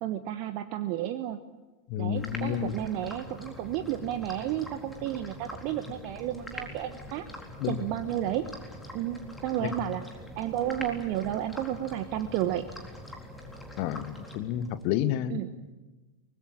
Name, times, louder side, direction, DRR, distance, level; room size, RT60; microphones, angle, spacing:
voice 1, 0.0-1.4 2.0-7.2 7.7-8.5 8.9-10.0 10.4-12.7 15.3-15.5, right 12 dB, 45° right, 10 dB, 1.1 m, -32 dB
voice 2, 1.9-2.8 7.6-7.8 9.6-9.9 13.8-15.4, left 11 dB, 45° left, 13 dB, 1.4 m, -30 dB
sound 1, 2.2-14.9, left 1 dB, 5° left, 4.0 m, -44 dB
24.0 x 20.5 x 8.9 m, 1.2 s
figure-of-eight pair, 90°, 0 cm